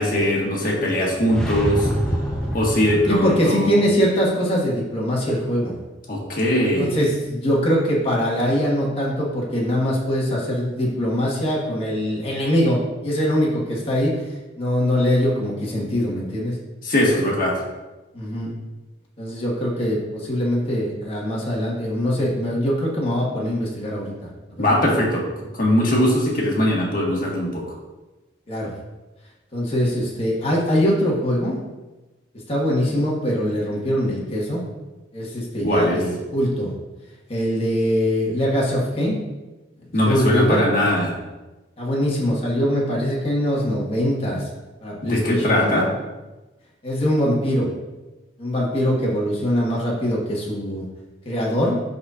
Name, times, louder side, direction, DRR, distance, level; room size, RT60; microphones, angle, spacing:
voice 1, 0.0-1.9 2.5-3.8 6.1-6.9 16.8-17.6 24.6-25.2 25.5-27.6 35.6-36.0 39.9-41.1 45.1-45.9, left 1 dB, 45° left, -3 dB, 1.5 m, -20 dB
sound 1, 1.2-3.5, equal, 5° left, 0.7 m, -26 dB
voice 2, 3.1-5.8 6.6-14.2 14.6-16.5 18.1-18.5 19.2-24.1 24.5-24.6 28.5-28.7 29.5-31.6 32.5-34.6 35.1-36.7 37.3-39.2 40.0-40.6 41.8-44.5 44.8-45.8 46.8-47.7 48.4-50.8 51.2-51.8, equal, 30° left, -4 dB, 1.5 m, -22 dB
11.0 x 4.0 x 2.5 m, 1.1 s
head